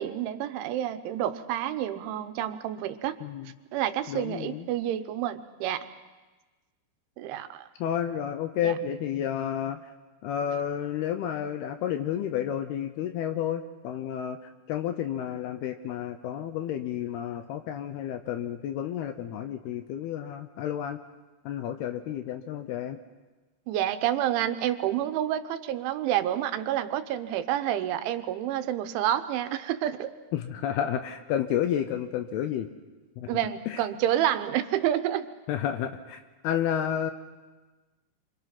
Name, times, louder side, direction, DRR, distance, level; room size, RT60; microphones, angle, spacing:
voice 1, 0.0-3.2 3.7-5.9 7.2-7.7 8.6-8.7 23.7-30.1 33.3-35.3, right 11 dB, 90° right, 10 dB, 3.4 m, -29 dB
voice 2, 3.2-3.5 4.1-4.7 7.8-9.9 10.2-14.4 14.7-21.0 21.5-23.0 30.3-32.7 33.2-33.3 33.7-33.8 35.5-37.1, left 10 dB, 75° left, 8 dB, 2.5 m, -31 dB
27.0 x 25.0 x 6.0 m, 1.2 s
omnidirectional pair, 5.3 m